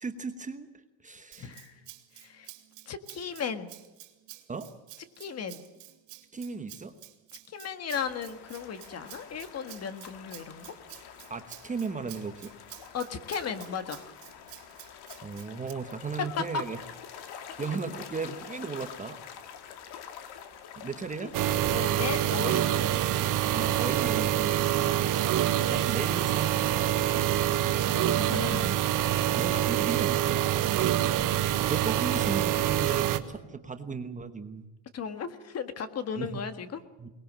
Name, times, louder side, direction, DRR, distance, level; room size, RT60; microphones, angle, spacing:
voice 1, 0.0-1.5 4.5-4.7 6.3-6.9 11.3-12.5 15.2-16.8 17.2-17.3 17.6-19.2 20.7-21.3 23.5-24.6 25.7-27.0 29.4-30.7 31.7-34.7 36.2-36.4 37.0-37.1, right 5 dB, 15° right, 8 dB, 1.1 m, -36 dB
Rattle (instrument), 1.3-15.7, right 19 dB, 85° right, 2.7 m, -50 dB
voice 2, 1.4-1.7 2.1-2.5 2.8-3.7 5.2-5.6 7.5-10.7 12.9-14.1 16.2-16.4 21.2-21.3 21.7-22.9 24.8-25.1 27.8-28.8 31.0-31.1 31.4-31.7 34.9-36.8, left 6 dB, 35° left, 10 dB, 1.6 m, -36 dB
sound 1, 7.9-27.8, left 8 dB, 60° left, 2.4 m, -47 dB
sound 2, 21.3-33.2, right 12 dB, 45° right, 1.4 m, -26 dB
22.5 x 20.0 x 7.5 m, 1.1 s
cardioid pair, 150°, 44 cm